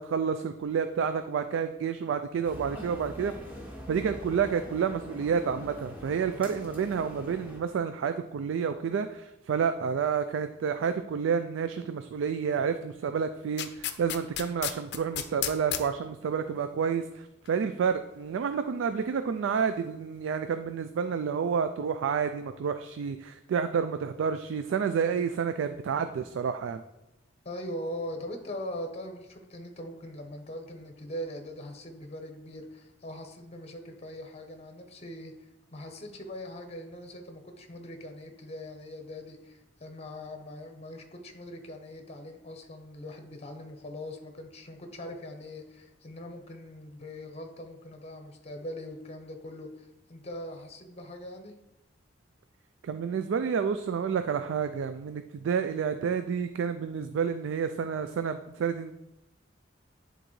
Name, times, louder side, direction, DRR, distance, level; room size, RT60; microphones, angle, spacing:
voice 1, 0.0-3.3 3.9-26.8 52.8-58.9, right 6 dB, 70° right, 9 dB, 0.3 m, -29 dB
sound 1, 2.4-7.6, equal, 10° right, 1.1 m, -43 dB
sound 2, 13.6-15.8 17.4-17.5, left 11 dB, 60° left, 0.5 m, -32 dB
voice 2, 27.4-35.3 35.7-51.6, left 1 dB, 35° left, 5 dB, 0.8 m, -41 dB
9.9 x 3.9 x 3.1 m, 0.92 s
head